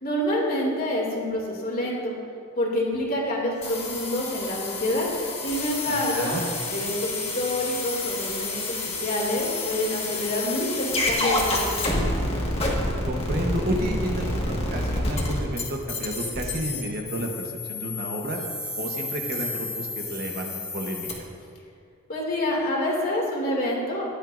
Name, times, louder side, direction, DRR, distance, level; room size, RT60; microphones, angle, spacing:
voice 1, 0.0-2.1 2.6-5.1 5.4-6.4 6.7-12.1 22.1-24.0, left 1 dB, 45° left, -3 dB, 2.5 m, -27 dB
sound 1, 3.6-21.1, left 2 dB, 30° left, 1.7 m, -29 dB
voice 2, 5.9-6.4 13.1-18.4 18.8-21.2, right 1 dB, 45° right, 1 dB, 1.1 m, -31 dB
16.0 x 11.0 x 2.6 m, 2.3 s
head